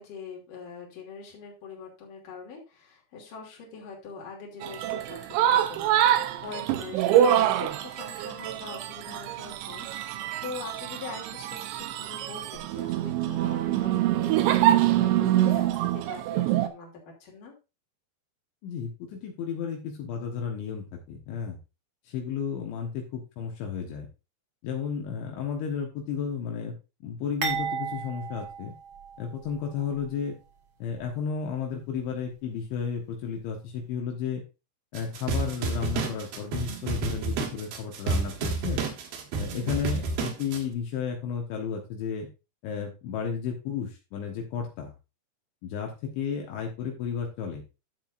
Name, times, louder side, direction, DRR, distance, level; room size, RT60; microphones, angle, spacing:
voice 1, 0.0-16.9 17.2-17.5 40.0-40.2, left 5 dB, 50° left, -1 dB, 4.1 m, -43 dB
sound 1, 4.6-16.7, right 12 dB, 80° right, 3.1 m, -25 dB
voice 2, 18.6-21.6 22.1-24.1 24.6-26.7 27.0-28.7 29.2-30.4 30.8-34.4 34.9-38.8 39.4-42.3 42.6-44.9 45.6-47.6, left 7 dB, 80° left, 1 dB, 3.7 m, -33 dB
sound 2, 27.4-29.6 29.9-30.1 31.0-31.1, right 6 dB, 45° right, 1.7 m, -34 dB
sound 3, 35.0-40.6, right 4 dB, 65° right, 3.1 m, -30 dB
11.5 x 7.6 x 2.6 m, 0.28 s
omnidirectional pair, 5.3 m